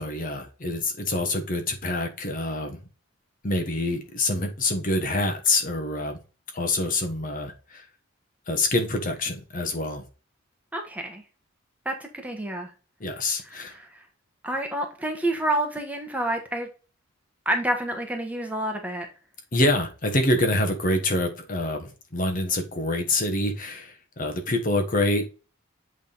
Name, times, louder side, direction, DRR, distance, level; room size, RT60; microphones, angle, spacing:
voice 1, 0.0-2.8 3.4-6.2 6.5-7.9 8.5-10.0 13.0-13.7 19.5-25.3, left 2 dB, 40° left, 4 dB, 1.3 m, -26 dB
voice 2, 10.7-11.2 11.8-12.7 13.5-14.0 14.4-16.7 17.4-19.1, right 1 dB, 5° right, 3 dB, 1.2 m, -28 dB
8.3 x 3.5 x 4.0 m, 0.34 s
head